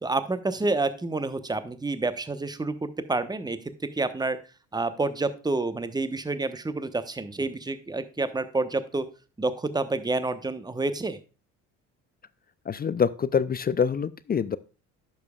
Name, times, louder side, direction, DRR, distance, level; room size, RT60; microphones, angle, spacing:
voice 1, 0.0-4.4 4.7-9.1 9.4-11.2, right 3 dB, 10° right, 12 dB, 1.0 m, -28 dB
voice 2, 12.7-14.6, left 7 dB, 25° left, 17 dB, 0.4 m, -25 dB
10.5 x 7.3 x 2.3 m, 0.33 s
hypercardioid pair, 60°, 37 cm